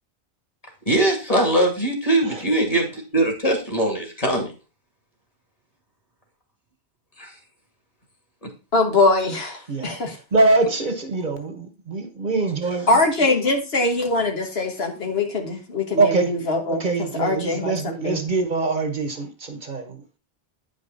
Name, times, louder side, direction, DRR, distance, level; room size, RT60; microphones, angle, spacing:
voice 1, 0.9-4.5 7.2-7.3, right 1 dB, 35° left, 2.5 m, -21 dB
voice 2, 8.7-10.2 12.9-18.2, left 2 dB, 70° left, 1.7 m, -22 dB
voice 3, 10.3-12.9 16.0-16.4 16.7-20.2, right 3 dB, 50° right, 1.2 m, -23 dB
9.4 x 5.3 x 3.9 m
omnidirectional pair, 1.1 m